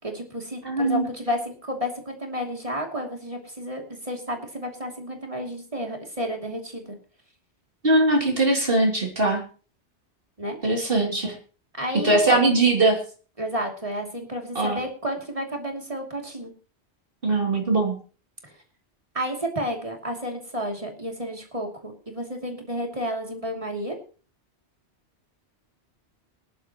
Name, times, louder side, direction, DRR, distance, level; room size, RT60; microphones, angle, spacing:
voice 1, 0.0-7.0 10.4-10.6 11.8-12.4 13.4-16.5 18.4-18.5 19.1-24.0, equal, 30° right, 2 dB, 2.9 m, -31 dB
voice 2, 0.6-1.1 7.8-9.4 10.6-11.3 12.0-13.0 14.5-14.8 17.2-18.0, right 2 dB, 50° right, 0 dB, 3.1 m, -21 dB
21.0 x 11.0 x 3.0 m, 0.38 s
omnidirectional pair, 1.2 m